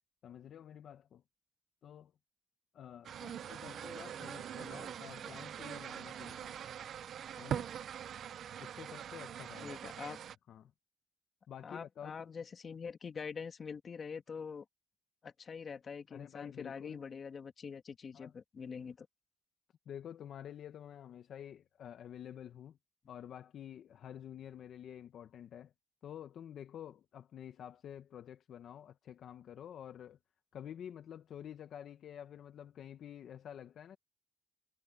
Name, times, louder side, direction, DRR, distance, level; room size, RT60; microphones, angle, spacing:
voice 1, 0.2-1.2 1.8-2.1 2.7-6.6 7.4-7.7 8.6-10.2 10.5-10.7 11.5-12.3 16.1-17.0 18.1-18.3 19.9-22.8 23.1-25.7 26.0-30.2 30.5-34.0, left 9 dB, 70° left, 0.9 m, -49 dB
sound 1, 3.0-10.3, right 9 dB, 65° right, 0.5 m, -43 dB
voice 2, 9.6-10.2 11.6-14.6 15.2-19.1, left 6 dB, 45° left, 2.5 m, -44 dB
cardioid pair, 115°, 0 cm